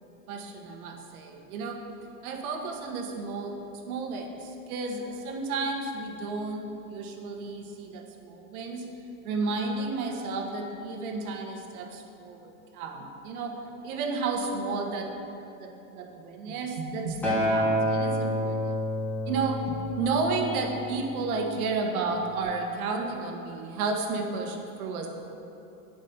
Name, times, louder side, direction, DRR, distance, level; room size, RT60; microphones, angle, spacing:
voice 1, 0.3-1.9 2.2-8.9 9.2-13.6 13.8-15.1 15.6-18.8 19.3-25.1, right 3 dB, 80° right, 3 dB, 1.3 m, -32 dB
Acoustic guitar, 17.2-21.5 22.4-22.5, equal, 5° left, 1.3 m, -29 dB
9.2 x 5.1 x 5.5 m, 3.0 s
supercardioid pair, 155°, 42 cm